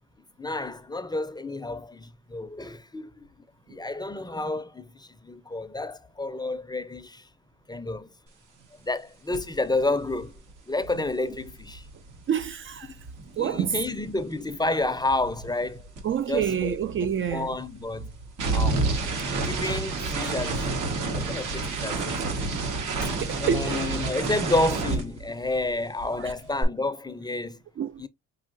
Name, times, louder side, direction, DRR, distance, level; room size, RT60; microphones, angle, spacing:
voice 1, 0.4-3.3 3.7-7.3 7.7-8.1 8.8-10.3 10.7-11.9 13.4-15.9 16.3-16.8 17.3-18.1 18.5-19.0 19.5-20.7 21.1-22.2 23.0-23.1 23.4-27.6 28.0-28.1, left 2 dB, 15° left, 0.5 m, -30 dB
sound 1, 9.3-9.5 9.8-14.2 14.4-25.7 26.0-26.6, right 3 dB, 80° right, 1.5 m, -30 dB
voice 2, 12.3-13.0 13.4-13.8 16.0-17.5 22.8-23.8 26.2-26.3 27.8-28.0, right 8 dB, 45° right, 0.4 m, -28 dB
5.5 x 2.7 x 2.5 m
cardioid pair, 90°, 30 cm